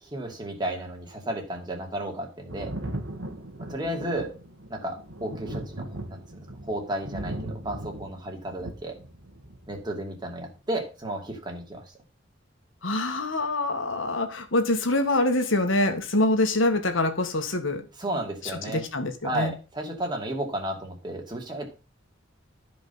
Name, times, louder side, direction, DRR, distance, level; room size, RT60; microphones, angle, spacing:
voice 1, 0.0-2.7 3.6-4.3 4.7-6.2 6.7-9.0 9.7-11.8 18.0-18.8 19.2-21.7, right 1 dB, 20° right, 1 dB, 2.6 m, -33 dB
Thunder, 2.5-9.8 11.0-11.1, right 1 dB, 90° right, 1.9 m, -38 dB
voice 2, 12.8-17.9 18.4-19.5, left 2 dB, 80° left, 7 dB, 1.8 m, -25 dB
13.0 x 5.2 x 5.5 m, 0.33 s
head